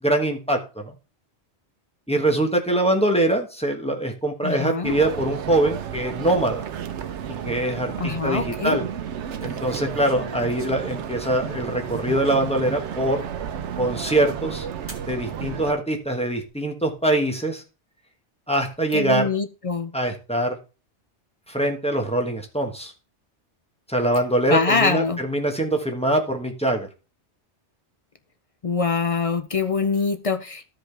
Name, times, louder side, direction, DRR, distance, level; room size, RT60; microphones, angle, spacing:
voice 1, 0.0-0.9 2.1-6.6 7.4-8.8 9.4-13.2 13.8-14.7 15.1-17.6 18.5-19.2 19.9-20.6 21.5-22.9 23.9-26.9, right 1 dB, 5° left, 2 dB, 1.2 m, -23 dB
voice 2, 4.4-4.9 8.0-8.8 18.9-19.9 24.5-25.2 28.6-30.7, left 4 dB, 45° left, 8 dB, 0.4 m, -24 dB
sound 1, 4.8-15.7, right 9 dB, 85° right, 1.0 m, -32 dB
sound 2, 9.4-12.7 13.4-13.5 14.9-15.1 16.0-16.5, left 1 dB, 10° right, 1.4 m, -44 dB
13.0 x 5.1 x 3.3 m, 0.32 s
omnidirectional pair, 1.2 m